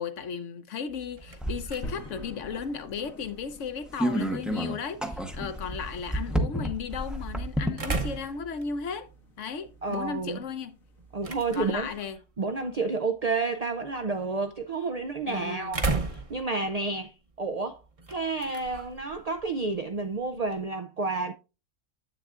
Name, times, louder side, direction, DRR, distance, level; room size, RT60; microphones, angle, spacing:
voice 1, 0.0-9.1 9.4-10.8 11.5-12.2 15.3-15.7, left 6 dB, 65° left, 1.1 m, -35 dB
sound 1, 0.9-20.7, right 3 dB, 30° right, 0.8 m, -39 dB
sound 2, 1.4-2.6 2.9-3.0 3.2-3.3 4.0-7.8, right 1 dB, ahead, 0.6 m, -30 dB
sound 3, 1.8-12.1, left 2 dB, 85° left, 1.9 m, -49 dB
voice 2, 9.8-10.4 11.1-11.9 12.4-17.8 18.1-21.3, right 3 dB, 75° right, 0.3 m, -30 dB
9.9 x 7.9 x 2.4 m
omnidirectional pair, 1.4 m